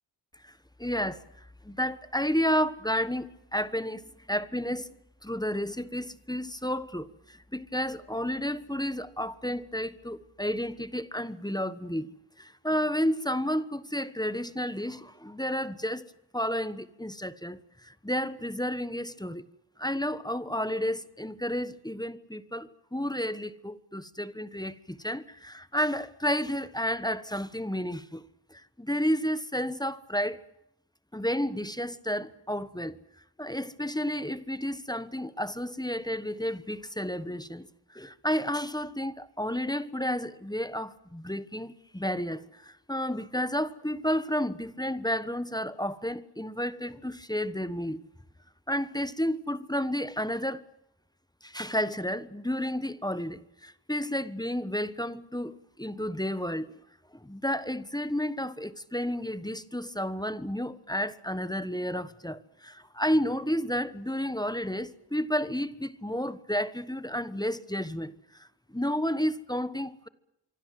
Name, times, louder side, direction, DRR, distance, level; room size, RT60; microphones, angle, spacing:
voice 1, 0.8-1.2 1.6-4.9 5.2-12.1 12.4-19.4 19.8-28.2 28.5-30.4 31.1-33.0 33.4-48.0 48.7-50.6 51.4-56.7 57.1-70.1, equal, 10° left, 1.2 m, -31 dB
25.0 x 25.0 x 7.7 m
wide cardioid pair, 80°, 46 cm